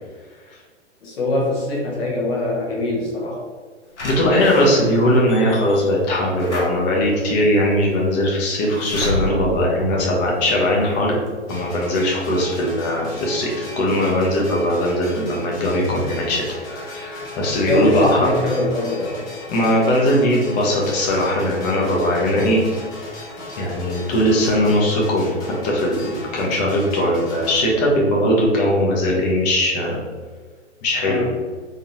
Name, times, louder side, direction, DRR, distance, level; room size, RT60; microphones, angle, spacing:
voice 1, 1.0-3.4 12.6-12.8 17.7-19.2 31.0-31.3, left 1 dB, 55° left, -3 dB, 1.5 m, -23 dB
Slam / Alarm, 4.0-10.8 11.3-11.4 11.6-11.7, left 1 dB, 70° left, 1.2 m, -32 dB
voice 2, 4.0-11.2 11.5-18.4 19.5-22.6 23.6-25.4 25.6-26.0 26.3-30.0 30.8-31.2, left 1 dB, 35° left, -3 dB, 1.2 m, -19 dB
sound 1, 11.5-27.6, left 2 dB, 10° left, 0.5 m, -36 dB
3.9 x 3.4 x 2.7 m, 1.5 s
figure-of-eight pair, 110°, 36 cm